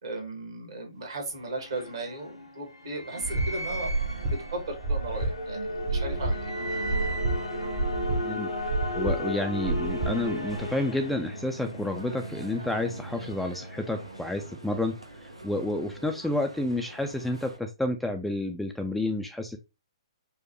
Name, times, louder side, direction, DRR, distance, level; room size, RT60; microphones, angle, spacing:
voice 1, 0.0-6.5, right 2 dB, 55° right, 3 dB, 1.4 m, -36 dB
sound 1, 1.0-14.8, left 1 dB, 85° left, 1.0 m, -35 dB
sound 2, 3.2-10.6, right 2 dB, 35° right, 0.8 m, -30 dB
voice 2, 8.2-8.5 8.9-14.9 15.2-19.6, left 1 dB, ahead, 4 dB, 0.3 m, -30 dB
sound 3, 9.8-17.6, right 1 dB, 85° right, 0.8 m, -46 dB
4.6 x 2.1 x 2.9 m, 0.25 s
figure-of-eight pair, 125°, 3 cm